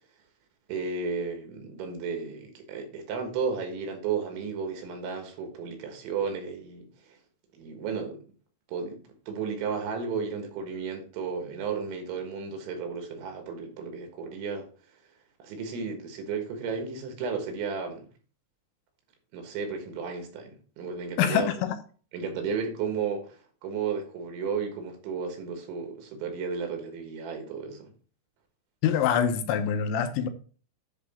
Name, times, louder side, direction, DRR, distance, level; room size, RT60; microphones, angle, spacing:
voice 1, 0.7-6.9 7.5-8.2 8.7-9.0 9.3-14.7 15.4-18.1 19.3-21.5 22.1-27.9, right 5 dB, 90° right, 3.9 m, -33 dB
voice 2, 21.2-21.8 28.8-30.3, left 8 dB, 85° left, 3.2 m, -25 dB
10.0 x 3.8 x 4.2 m
omnidirectional pair, 5.2 m